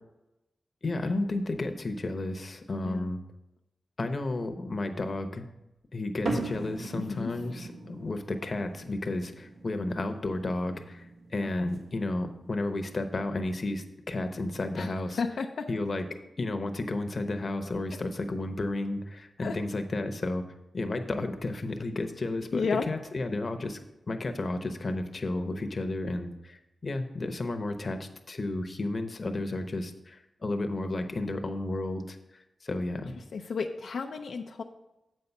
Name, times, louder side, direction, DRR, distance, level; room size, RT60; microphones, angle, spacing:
voice 1, 0.8-3.2 4.0-5.5 5.9-15.2 15.7-16.1 16.4-20.4 20.7-23.8 24.1-33.2, left 2 dB, 45° left, 7 dB, 0.8 m, -32 dB
sound 1, 6.3-13.0, right 2 dB, 70° right, 1.4 m, -39 dB
voice 2, 7.0-7.3 11.4-11.7 14.8-14.9 15.2-15.7 19.4-19.6 22.5-22.9 33.3-34.6, left 5 dB, 80° left, 3 dB, 0.4 m, -32 dB
7.5 x 5.5 x 5.9 m, 0.94 s
cardioid pair, 80°, 0 cm